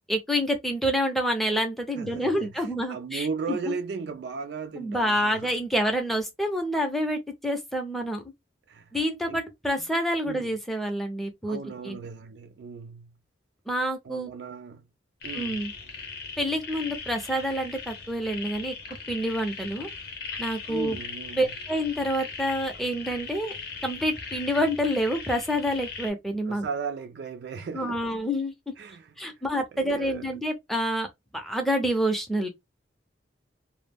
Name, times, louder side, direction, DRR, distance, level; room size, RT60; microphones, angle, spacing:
voice 1, 0.1-3.6 4.8-8.2 8.9-11.6 11.8-12.0 13.7-14.3 15.3-15.7 16.4-18.7 19.1-19.9 20.4-21.0 21.4-23.5 23.8-26.6 27.7-28.5 29.2-31.1 31.3-32.5, equal, ahead, 0.5 m, -27 dB
voice 2, 2.0-5.5 8.7-8.9 9.2-9.4 9.8-9.9 10.2-10.6 11.4-13.1 14.0-14.8 15.2-15.7 20.6-21.5 26.5-28.0 28.8-29.1 29.7-30.3, right 5 dB, 60° right, 0.3 m, -36 dB
sound 1, 15.2-26.1, left 5 dB, 55° left, 0.6 m, -39 dB
2.1 x 2.0 x 3.3 m
head